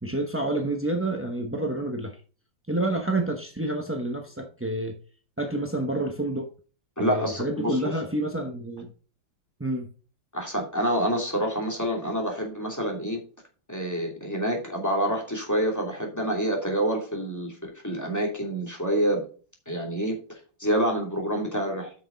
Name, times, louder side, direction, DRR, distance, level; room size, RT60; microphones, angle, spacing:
voice 1, 0.0-2.2 2.7-4.9 5.4-6.5 7.0-8.9 9.6-9.9, right 2 dB, 15° right, 3 dB, 0.4 m, -28 dB
voice 2, 7.0-7.9 10.3-13.2 13.7-19.2 19.7-21.9, equal, 10° left, 0 dB, 2.7 m, -27 dB
9.1 x 6.1 x 4.0 m, 0.38 s
omnidirectional pair, 2.1 m